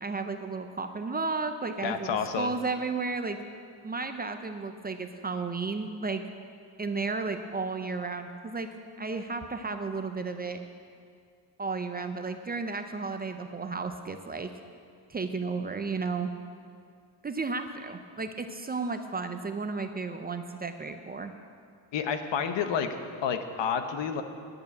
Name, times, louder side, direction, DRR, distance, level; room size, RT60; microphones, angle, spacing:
voice 1, 0.0-3.4 3.8-6.2 6.8-8.7 9.0-10.6 11.6-14.5 15.1-16.3 17.2-21.3, right 4 dB, 20° right, 7 dB, 0.5 m, -33 dB
voice 2, 1.8-2.5 21.9-22.9 23.2-24.2, left 7 dB, 70° left, 8 dB, 1.0 m, -29 dB
10.5 x 6.8 x 8.5 m, 2.3 s
cardioid pair, 125°, 45 cm